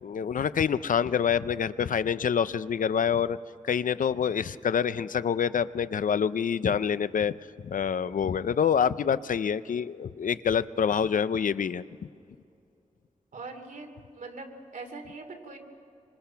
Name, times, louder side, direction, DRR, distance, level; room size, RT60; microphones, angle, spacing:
voice 1, 0.0-3.4 3.6-7.4 7.7-11.8, left 7 dB, 80° left, 15 dB, 0.5 m, -26 dB
voice 2, 13.3-13.9 14.1-14.5 14.7-15.6, right 3 dB, 80° right, 4 dB, 2.8 m, -41 dB
26.0 x 26.0 x 5.8 m, 2.5 s
wide cardioid pair, 105°, 13 cm